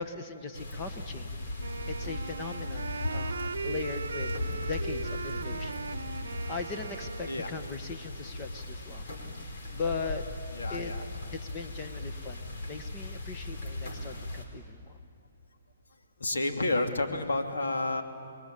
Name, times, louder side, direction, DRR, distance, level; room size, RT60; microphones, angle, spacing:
voice 1, 0.0-1.3 1.9-4.3 4.6-5.8 6.2-9.1 9.4-10.2 10.7-10.9 11.3-14.9, left 4 dB, 30° left, 6 dB, 1.5 m, -39 dB
sound 1, 0.5-14.5, left 2 dB, 65° left, 4.6 m, -38 dB
Wind instrument woodwind instrument, 1.6-7.8, right 5 dB, 80° right, 0.8 m, -39 dB
voice 2, 3.0-3.3 7.3-7.5 10.6-11.0 16.2-18.0, left 2 dB, 80° left, 4 dB, 2.7 m, -30 dB
27.5 x 22.0 x 8.5 m, 2.6 s
hypercardioid pair, 140°, 0 cm